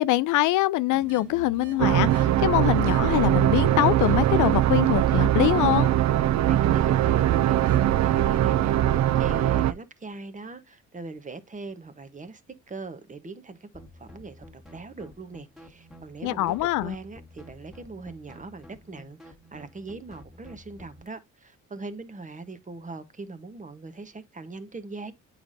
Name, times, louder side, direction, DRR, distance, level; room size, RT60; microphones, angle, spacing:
voice 1, 0.0-5.9 16.2-16.9, left 16 dB, 80° left, 0.5 m, -24 dB
sound 1, 0.9-8.8, right 11 dB, 90° right, 1.1 m, -46 dB
sound 2, 1.8-9.7, right 12 dB, 65° right, 0.5 m, -21 dB
voice 2, 6.5-12.4 12.7-13.7 13.9-25.1, right 3 dB, 25° right, 1.1 m, -40 dB
sound 3, 13.7-21.1, left 1 dB, ahead, 1.6 m, -50 dB
8.1 x 5.0 x 2.6 m
cardioid pair, 90°, 30 cm